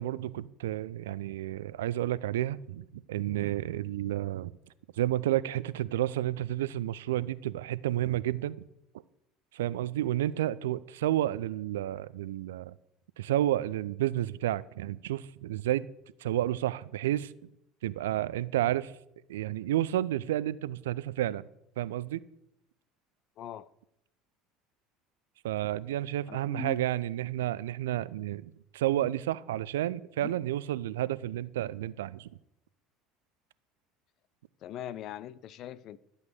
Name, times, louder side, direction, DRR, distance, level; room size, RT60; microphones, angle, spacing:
voice 1, 0.0-4.5 5.0-8.7 9.5-12.8 13.2-15.9 16.2-17.3 17.8-18.9 19.3-21.5 21.8-22.2 25.4-32.3, right 13 dB, 75° right, 18 dB, 0.5 m, -31 dB
voice 2, 23.4-23.7 26.3-26.8 30.2-30.3 34.6-36.0, left 11 dB, 50° left, 18 dB, 0.6 m, -41 dB
12.5 x 8.2 x 6.7 m, 0.82 s
figure-of-eight pair, 70°, 0 cm